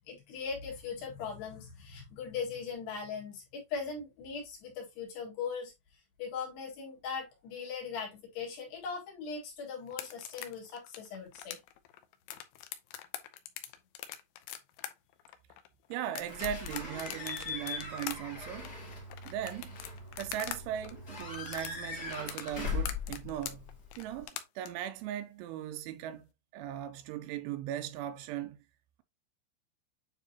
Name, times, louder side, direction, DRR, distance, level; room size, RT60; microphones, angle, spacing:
voice 1, 0.0-5.7 6.2-11.6, left 5 dB, 65° left, 3.7 m, -39 dB
sound 1, 9.9-20.6 20.8-24.7, left 12 dB, 80° left, 2.3 m, -42 dB
voice 2, 15.9-18.8 19.3-19.8 20.2-23.7 24.0-26.3 26.5-28.6, right 11 dB, 80° right, 3.1 m, -38 dB
Slam / Squeak / Alarm, 16.3-24.2, left 4 dB, 35° left, 1.6 m, -40 dB
9.2 x 3.7 x 2.8 m
omnidirectional pair, 5.5 m